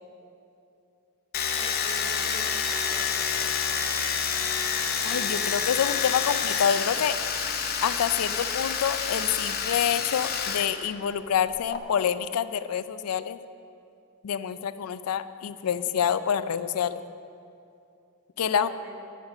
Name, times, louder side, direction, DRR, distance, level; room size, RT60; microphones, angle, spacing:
Domestic sounds home sounds, 1.3-10.7 10.9-11.8, left 6 dB, 45° left, 0.8 m, -28 dB
voice 1, 1.6-3.2 18.5-18.9, left 1 dB, 15° right, -1 dB, 1.3 m, -46 dB
voice 2, 5.0-7.2 7.8-13.4 14.2-17.0 18.4-18.7, left 8 dB, 90° left, 13 dB, 0.4 m, -27 dB
10.0 x 7.3 x 6.3 m, 2.6 s
head